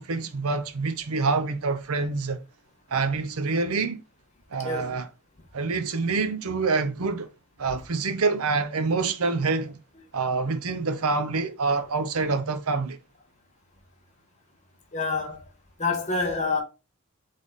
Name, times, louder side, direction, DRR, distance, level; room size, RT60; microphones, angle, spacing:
voice 1, 0.0-2.4 2.9-4.0 4.5-5.1 5.5-7.3 7.6-9.8 10.1-13.0, right 4 dB, 85° right, 0.7 m, -26 dB
voice 2, 4.6-4.9 14.9-15.5 15.8-16.6, left 3 dB, 35° left, 1.1 m, -27 dB
3.6 x 3.4 x 3.9 m
head